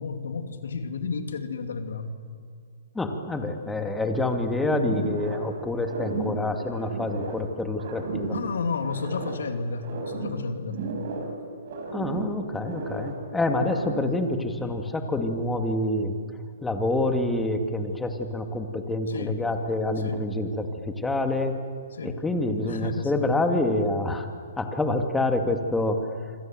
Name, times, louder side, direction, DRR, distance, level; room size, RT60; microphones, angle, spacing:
voice 1, 0.0-2.1 8.3-10.9 19.1-19.5 20.0-20.3 21.9-22.2 22.7-23.2, left 4 dB, 80° left, 7 dB, 2.8 m, -32 dB
voice 2, 2.9-8.3 11.9-16.1 16.6-21.6 22.0-24.3 24.6-26.0, left 2 dB, 5° left, 5 dB, 2.4 m, -27 dB
sound 1, 4.8-5.5 5.8-7.5 7.8-9.5 9.8-11.4 11.6-13.2 13.5-14.2, right 3 dB, 55° right, 6.0 m, -34 dB
27.0 x 25.0 x 7.8 m, 2.2 s
hypercardioid pair, 145°, 0 cm